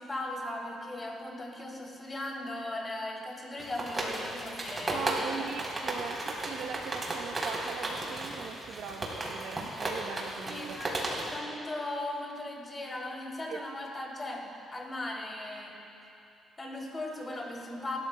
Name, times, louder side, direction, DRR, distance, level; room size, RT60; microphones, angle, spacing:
voice 1, 0.0-5.5 5.8-6.0 10.4-15.9 16.6-18.0, left 1 dB, 25° left, -1 dB, 3.0 m, -38 dB
sound 1, 3.6-11.4, right 2 dB, 30° right, 3.7 m, -35 dB
voice 2, 4.9-10.8 13.5-13.6, right 7 dB, 75° right, 6 dB, 1.0 m, -40 dB
28.5 x 13.5 x 2.3 m, 3.0 s
cardioid pair, 90°, 0 cm